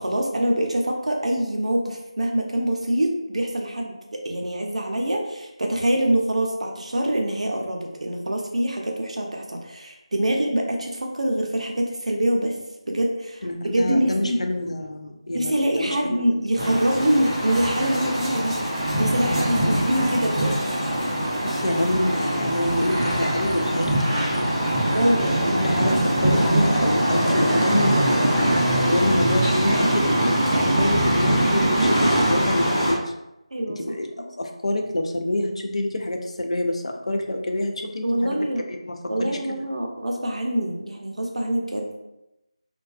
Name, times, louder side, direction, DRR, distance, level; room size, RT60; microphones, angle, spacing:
voice 1, 0.0-12.6 12.9-14.4 15.3-20.6 24.9-25.4 33.5-33.8 34.2-34.3 38.0-38.7 39.1-42.0, right 1 dB, 75° right, 1 dB, 0.5 m, -25 dB
voice 2, 13.4-16.2 19.3-20.1 21.4-24.4 25.5-33.1 33.8-38.4 38.7-38.8 39.2-39.4, left 1 dB, 70° left, 3 dB, 0.4 m, -27 dB
sound 1, 16.6-32.9, right 1 dB, 5° right, 0.4 m, -22 dB
2.3 x 2.2 x 2.4 m, 0.91 s
figure-of-eight pair, 170°, 3 cm